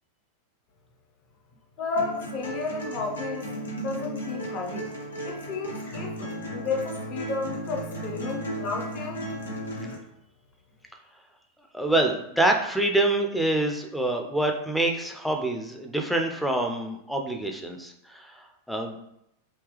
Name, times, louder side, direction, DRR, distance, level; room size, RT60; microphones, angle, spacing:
voice 1, 1.8-3.5 3.7-4.9 5.2-9.3, left 4 dB, 35° left, 1 dB, 0.8 m, -32 dB
sound 1, 2.0-9.9, right 1 dB, 70° left, 0.8 m, -35 dB
voice 2, 11.7-19.0, right 1 dB, ahead, 1 dB, 0.5 m, -26 dB
3.5 x 2.8 x 3.2 m, 0.77 s
figure-of-eight pair, 90°, 0 cm